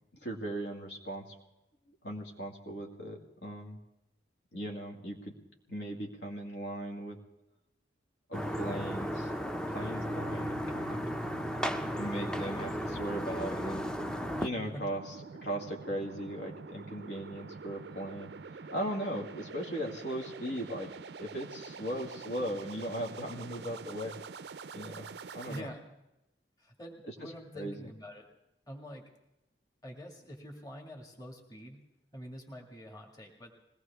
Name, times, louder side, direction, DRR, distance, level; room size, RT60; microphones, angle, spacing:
voice 1, 0.2-1.3 2.0-3.8 4.5-5.3 5.7-7.2 8.3-9.3 9.7-11.0 11.9-13.8 14.4-15.2 15.4-18.3 18.7-20.9 21.2-24.2 24.7-25.7 27.1-27.2 27.6-27.8, equal, 65° left, 0 dB, 2.2 m, -38 dB
sound 1, 8.3-14.5, equal, 5° left, 0.6 m, -35 dB
sound 2, 9.1-25.6, right 4 dB, 60° right, 0.4 m, -47 dB
voice 2, 25.5-25.8 26.6-28.3 28.7-29.0 29.8-31.8 32.1-33.5, equal, 20° left, 1 dB, 2.1 m, -46 dB
21.0 x 18.0 x 3.5 m, 0.90 s
head